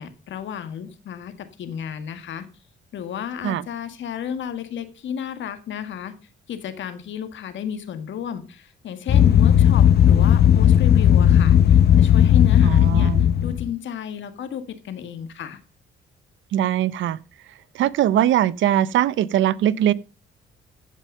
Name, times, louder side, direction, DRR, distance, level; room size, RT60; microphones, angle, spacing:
voice 1, 0.0-2.5 2.9-6.1 6.5-13.1 13.4-15.6, left 8 dB, 70° left, 1.8 m, -32 dB
sound 1, 9.1-13.7, left 10 dB, 55° left, 0.8 m, -15 dB
voice 2, 12.6-13.2 16.5-17.2 17.7-19.9, right 12 dB, 75° right, 0.7 m, -21 dB
15.0 x 5.4 x 5.5 m
cardioid pair, 90°, 20 cm